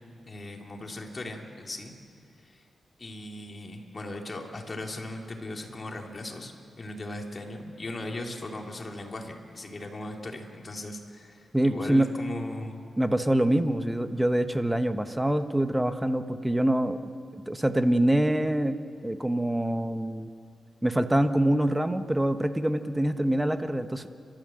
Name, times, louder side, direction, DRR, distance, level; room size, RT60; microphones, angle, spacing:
voice 1, 0.3-1.9 2.4-2.6 3.0-6.5 6.8-12.8, left 2 dB, 40° left, 1 dB, 3.0 m, -38 dB
voice 2, 11.5-12.1 13.0-17.0 17.3-18.8 19.0-20.3 20.8-24.1, right 1 dB, 10° right, 9 dB, 1.2 m, -25 dB
30.0 x 13.0 x 7.7 m, 2.3 s
cardioid pair, 70°, 0 cm